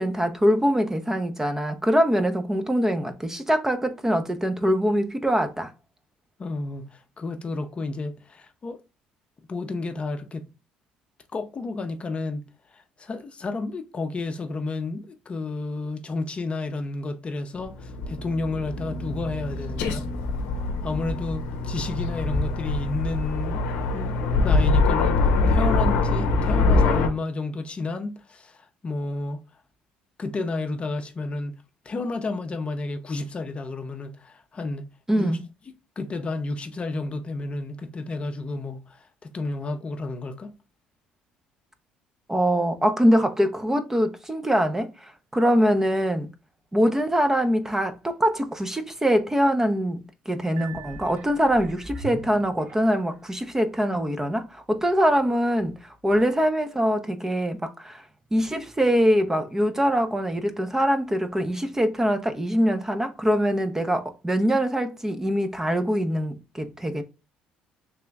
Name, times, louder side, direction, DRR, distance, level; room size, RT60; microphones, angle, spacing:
voice 1, 0.0-5.7 35.1-35.4 42.3-46.3 46.7-58.0 58.3-67.0, equal, 15° right, 0.6 m, -23 dB
voice 2, 6.4-8.8 9.5-10.5 11.3-12.5 12.7-20.1 20.8-23.6 23.9-29.4 30.2-31.6 31.8-34.9 35.2-35.4 36.0-40.5, left 3 dB, 35° left, 0.6 m, -31 dB
Aircraft, 17.6-27.1, left 3 dB, 80° left, 0.6 m, -24 dB
Piano, 50.6-51.9, right 13 dB, 85° right, 0.5 m, -45 dB
sound 1, 50.7-53.3 53.9-54.0, right 1 dB, 45° right, 1.4 m, -41 dB
3.4 x 2.9 x 3.4 m
supercardioid pair, 70°, 3 cm